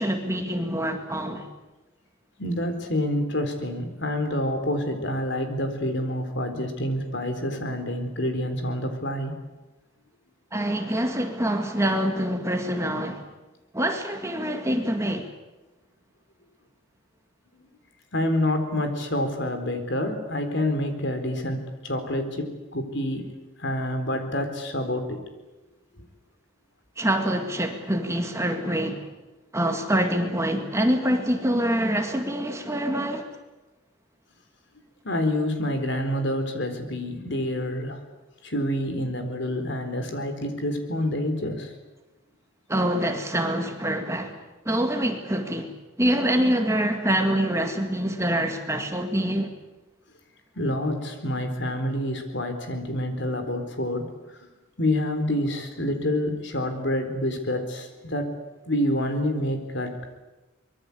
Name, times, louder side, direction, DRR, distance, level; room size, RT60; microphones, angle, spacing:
voice 1, 0.0-1.5 10.5-13.3 13.7-15.3 27.0-29.1 29.5-33.3 42.7-44.4 44.7-45.7 46.0-49.5, right 1 dB, 15° right, 2.0 m, -25 dB
voice 2, 2.4-9.3 17.5-17.7 18.1-23.3 23.6-25.2 26.0-26.1 35.0-38.0 38.4-41.7 50.5-54.1 54.8-58.3 58.7-60.2, left 1 dB, 55° left, 4.1 m, -27 dB
24.5 x 22.5 x 8.5 m
head